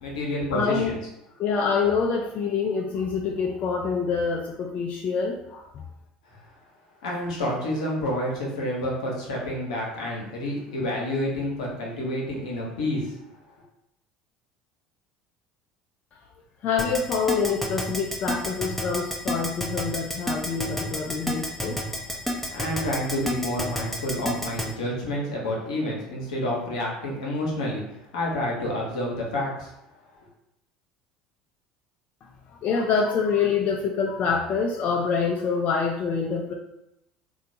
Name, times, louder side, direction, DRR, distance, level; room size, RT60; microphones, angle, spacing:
voice 1, 0.0-1.0 6.3-6.4 7.0-13.1 22.5-29.7, left 1 dB, 80° left, -2 dB, 0.8 m, -29 dB
voice 2, 0.5-0.9 1.4-5.8 16.6-21.8 32.5-36.5, left 5 dB, 50° left, 1 dB, 0.3 m, -26 dB
Keyboard (musical), 16.8-24.7, equal, 5° left, 0.6 m, -29 dB
2.7 x 2.2 x 2.6 m, 0.84 s
hypercardioid pair, 70°, 4 cm